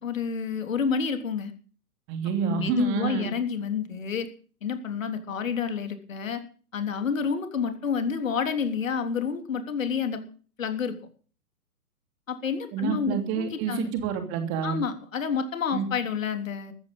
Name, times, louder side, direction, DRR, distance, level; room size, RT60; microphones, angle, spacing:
voice 1, 0.0-1.5 2.5-4.3 4.6-6.4 6.7-10.2 10.6-11.0 12.3-13.9 14.6-16.7, left 6 dB, 60° left, 7 dB, 3.5 m, -29 dB
voice 2, 2.1-3.3 12.7-14.8 15.7-15.9, right 7 dB, 25° right, 7 dB, 2.9 m, -28 dB
15.0 x 14.0 x 5.5 m, 0.41 s
figure-of-eight pair, 125°, 46 cm